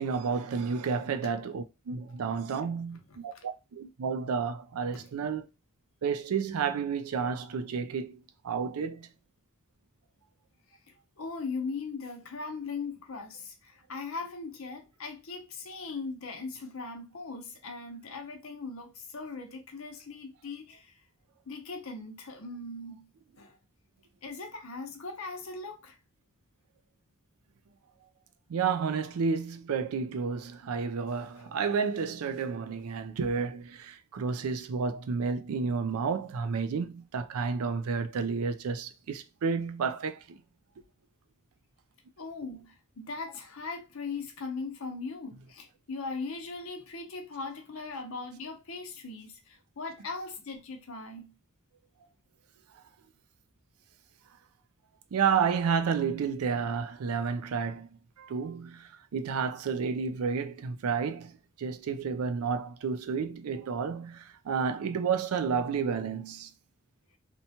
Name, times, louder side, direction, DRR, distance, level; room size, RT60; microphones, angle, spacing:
voice 1, 0.0-5.5 6.0-9.1 28.5-40.4 55.1-57.9 58.2-61.3 61.6-66.5, right 5 dB, 90° right, 0.4 m, -31 dB
voice 2, 11.2-20.9 21.5-23.1 23.4-23.5 24.2-26.0 31.1-31.5 42.2-51.3, left 4 dB, 75° left, 0.7 m, -39 dB
2.9 x 2.2 x 2.7 m
head